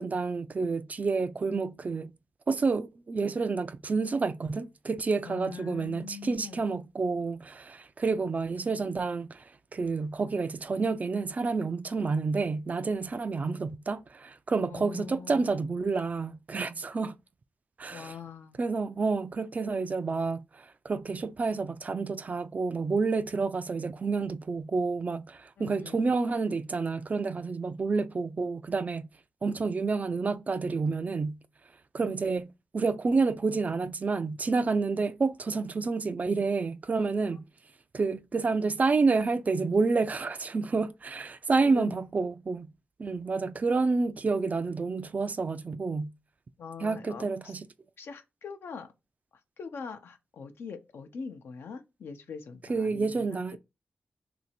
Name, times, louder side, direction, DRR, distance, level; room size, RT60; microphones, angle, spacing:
voice 1, 0.0-2.1 2.5-9.4 9.7-17.2 17.8-18.1 18.6-29.1 29.4-31.4 31.9-32.5 32.7-37.4 37.9-42.7 43.0-46.1 46.8-47.7 52.7-53.6, right 4 dB, 40° right, 0.4 m, -29 dB
voice 2, 5.2-6.7 13.4-13.7 14.7-15.5 17.9-18.6 25.6-26.1 32.0-32.5 41.6-42.0 46.6-47.5 48.0-48.9 49.6-53.6, left 6 dB, 80° left, 0.6 m, -43 dB
3.0 x 2.6 x 4.3 m
cardioid pair, 65°, 4 cm